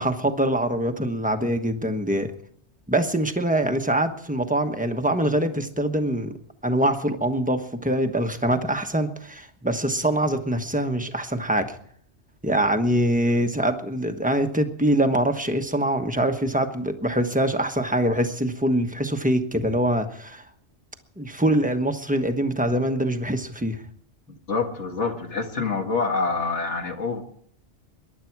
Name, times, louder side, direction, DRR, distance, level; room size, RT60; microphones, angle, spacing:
voice 1, 0.0-2.3 2.9-6.3 6.6-11.7 12.4-20.4 21.2-23.8, right 1 dB, 5° right, 6 dB, 1.1 m, -24 dB
voice 2, 24.5-27.2, left 4 dB, 75° left, 3 dB, 2.2 m, -26 dB
23.0 x 11.0 x 4.7 m, 0.62 s
omnidirectional pair, 1.2 m